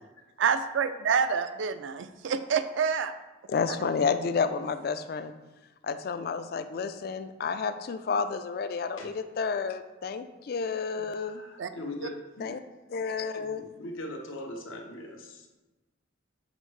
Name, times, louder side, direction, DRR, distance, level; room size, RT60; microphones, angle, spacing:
voice 1, 0.4-3.1 3.7-3.8 11.6-11.7 12.0-12.1, right 6 dB, 70° right, 11 dB, 0.4 m, -27 dB
voice 2, 3.5-5.3 5.8-11.4 12.4-12.6 12.9-13.6, left 5 dB, 50° left, 11 dB, 0.3 m, -30 dB
voice 3, 10.9-12.6 13.4-15.5, left 1 dB, 85° left, 2 dB, 0.9 m, -41 dB
6.1 x 5.2 x 3.2 m, 1.1 s
head